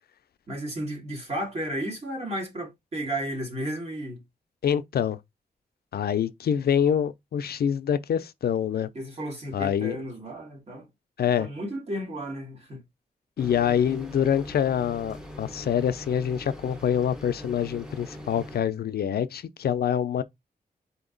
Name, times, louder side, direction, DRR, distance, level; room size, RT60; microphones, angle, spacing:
voice 1, 0.5-4.2 8.9-10.9 11.2-12.8, right 1 dB, 40° right, 2.1 m, -33 dB
voice 2, 4.6-5.2 5.9-8.9 9.5-10.0 11.2-11.5 13.4-20.2, left 9 dB, 80° left, 0.4 m, -25 dB
sound 1, 13.4-18.6, left 1 dB, 5° right, 0.9 m, -42 dB
4.3 x 2.9 x 3.8 m
wide cardioid pair, 155°, 16 cm